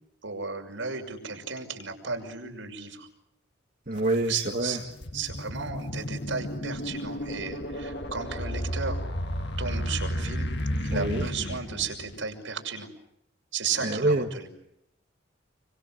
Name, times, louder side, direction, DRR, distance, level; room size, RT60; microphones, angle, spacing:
voice 1, 0.2-3.1 4.3-4.8 5.1-9.0 9.6-10.5 10.8-12.9 13.5-14.5, right 5 dB, 75° right, 3 dB, 6.2 m, -34 dB
voice 2, 3.9-4.8 10.9-11.2 13.8-14.3, right 2 dB, 45° right, 2 dB, 1.6 m, -26 dB
sound 1, 4.0-4.1 4.6-12.2, equal, 60° left, 2.1 m, -32 dB
28.0 x 26.0 x 7.8 m, 0.80 s
head